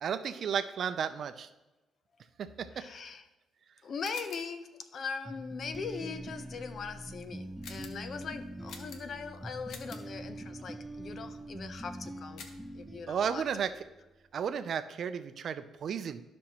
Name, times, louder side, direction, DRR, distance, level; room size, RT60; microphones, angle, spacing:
voice 1, 0.0-1.5 2.4-2.8 13.1-13.7 14.3-16.2, right 7 dB, 60° right, 11 dB, 0.5 m, -33 dB
voice 2, 2.7-3.2 3.8-13.5, left 5 dB, 55° left, 10 dB, 0.7 m, -41 dB
sound 1, 4.0-4.6 7.6-8.1 8.7-9.3 9.7-10.1 12.4-12.7, left 5 dB, 80° left, 0.9 m, -48 dB
sound 2, 5.3-14.0, right 1 dB, 5° right, 0.5 m, -44 dB
13.0 x 5.2 x 3.0 m, 1.1 s
cardioid pair, 90°, 0 cm